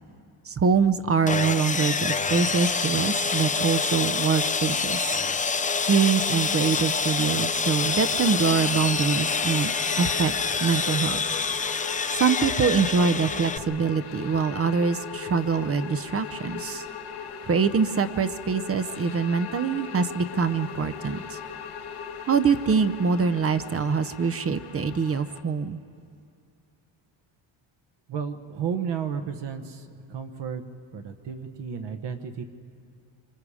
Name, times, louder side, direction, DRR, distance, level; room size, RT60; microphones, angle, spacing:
voice 1, 0.5-5.0 5.8-9.7 10.0-11.2 12.2-16.8 17.4-21.4 22.3-25.8, right 5 dB, 30° right, 11 dB, 0.6 m, -24 dB
Sawing, 1.3-13.6, left 5 dB, 15° left, 0.5 m, -26 dB
sound 1, 7.8-25.4, left 7 dB, 85° left, 1.8 m, -39 dB
voice 2, 28.1-30.6 30.9-32.4, right 7 dB, 60° right, 6 dB, 1.2 m, -32 dB
26.0 x 25.0 x 4.9 m, 2.4 s
cardioid pair, 115°, 48 cm